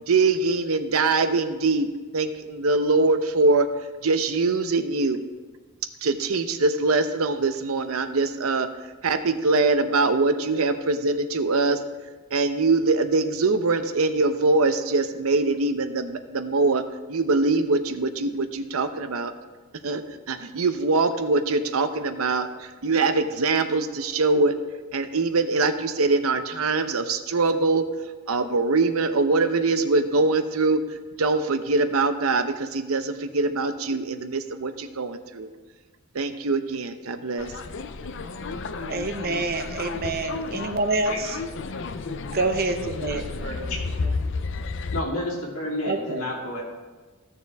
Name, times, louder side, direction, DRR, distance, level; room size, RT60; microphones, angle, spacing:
voice 1, 0.1-3.7 4.0-5.2 6.0-8.7 9.0-11.8 12.3-16.8 17.1-19.3 19.8-24.5 24.9-27.8 28.3-30.8 31.2-35.5 36.1-37.5, right 3 dB, 85° right, 9 dB, 0.7 m, -23 dB
sound 1, 37.4-45.0, left 4 dB, 60° left, 0.5 m, -32 dB
voice 2, 38.8-41.4 42.3-43.2 44.0-44.2 45.8-46.2, right 3 dB, 45° right, 7 dB, 0.8 m, -27 dB
voice 3, 41.0-41.4 41.7-41.8 43.0-43.8 44.9-46.6, left 1 dB, 85° left, -2 dB, 2.5 m, -31 dB
15.0 x 6.8 x 3.5 m, 1.3 s
head